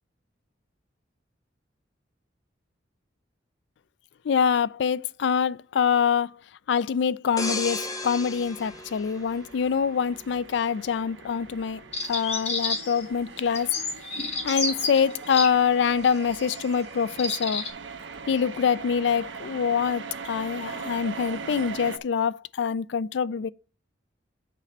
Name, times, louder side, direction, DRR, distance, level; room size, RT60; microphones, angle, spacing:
voice 1, 4.2-6.3 6.7-13.7 14.4-17.7 18.3-23.5, left 6 dB, 65° left, 0.4 m, -25 dB
sound 1, 7.4-10.0 10.5-10.7, left 3 dB, 20° left, 0.9 m, -34 dB
sound 2, 8.2-22.0, right 5 dB, 75° right, 0.9 m, -41 dB
sound 3, 11.9-13.0 13.5-15.5 16.3-16.6 17.1-17.7, left 3 dB, 35° left, 1.9 m, -29 dB
7.4 x 4.2 x 6.5 m
head